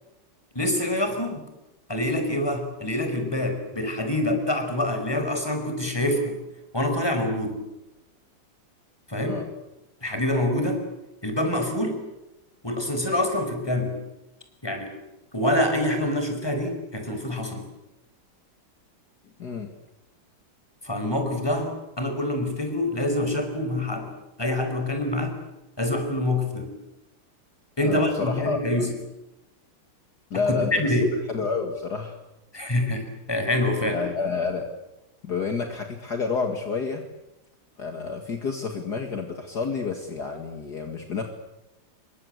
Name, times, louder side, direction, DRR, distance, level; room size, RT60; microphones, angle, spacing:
voice 1, 0.5-1.5 1.9-6.4 6.7-7.6 9.1-9.4 10.0-10.8 11.2-12.0 12.6-14.0 14.6-15.0 15.3-17.6 20.8-24.1 24.4-25.4 25.8-26.8 27.8-28.9 30.5-31.1 32.5-34.0, left 1 dB, 10° left, 6 dB, 5.2 m, -26 dB
voice 2, 27.8-28.9 30.3-31.0 31.3-32.2 33.9-34.7 35.2-37.0 37.8-41.3, left 5 dB, 50° left, 4 dB, 2.5 m, -29 dB
27.0 x 24.0 x 8.1 m, 0.93 s
omnidirectional pair, 2.3 m